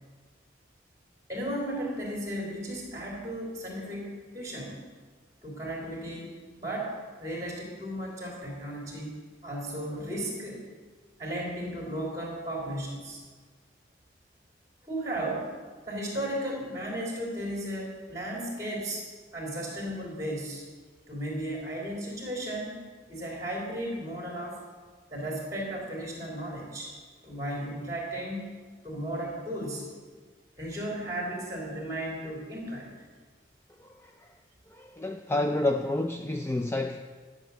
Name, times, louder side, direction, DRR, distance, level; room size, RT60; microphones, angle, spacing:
voice 1, 1.3-4.8 5.4-6.3 6.6-10.7 11.2-13.2 14.8-15.5 15.9-19.0 19.3-20.6 21.1-22.8 23.1-24.6 25.1-26.9 27.2-28.5 28.8-29.9 30.6-32.9, right 1 dB, 20° right, -2 dB, 3.1 m, -35 dB
voice 2, 33.8-34.3 34.7-37.0, left 2 dB, 15° left, 5 dB, 0.3 m, -30 dB
11.5 x 7.1 x 7.0 m, 1.5 s
head